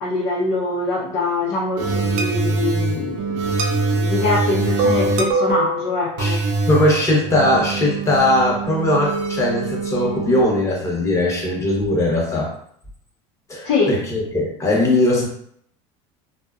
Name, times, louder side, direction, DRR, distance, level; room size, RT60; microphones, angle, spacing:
voice 1, 0.0-3.5 3.9-6.4 13.6-13.9, left 3 dB, 75° left, -5 dB, 0.6 m, -23 dB
sound 1, 1.8-10.4, right 3 dB, 65° right, 0.5 m, -23 dB
voice 2, 6.7-12.5 13.5-15.3, left 1 dB, 20° left, -2 dB, 0.8 m, -19 dB
2.6 x 2.1 x 2.4 m, 0.66 s
supercardioid pair, 120°, 15 cm